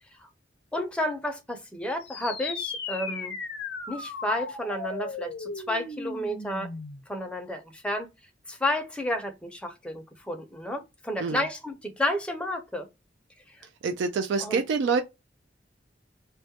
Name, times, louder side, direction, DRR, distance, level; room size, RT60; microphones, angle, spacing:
voice 1, 0.7-3.3 3.9-6.7 7.1-8.1 8.5-12.9 13.5-13.7 14.4-14.6, left 1 dB, 5° left, 0.5 m, -31 dB
sound 1, 2.0-7.0, left 4 dB, 60° left, 0.6 m, -36 dB
voice 2, 13.8-15.0, right 5 dB, 75° right, 0.3 m, -26 dB
2.3 x 2.1 x 2.7 m
head